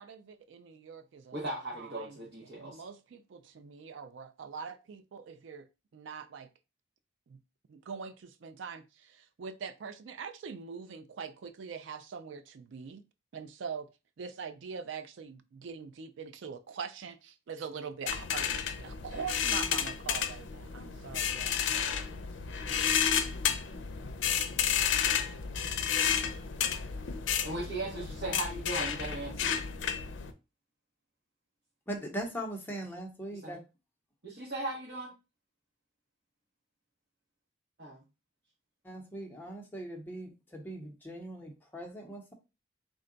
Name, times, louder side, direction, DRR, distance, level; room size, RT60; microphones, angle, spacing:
voice 1, 0.0-1.4 1.8-2.1 2.6-5.7 5.9-6.5 7.3-7.4 7.7-8.8 9.4-13.0 13.3-13.9 14.2-22.3, right 6 dB, 80° right, 0.4 m, -43 dB
voice 2, 1.3-2.8 22.6-22.8 27.4-29.5 33.4-33.6 34.2-35.1 37.8-38.0, right 2 dB, 60° right, 1.0 m, -38 dB
sound 1, 18.1-30.3, left 8 dB, 80° left, 0.5 m, -31 dB
voice 3, 31.9-33.6 38.8-42.3, right 1 dB, 10° left, 0.7 m, -40 dB
3.6 x 2.2 x 3.8 m
head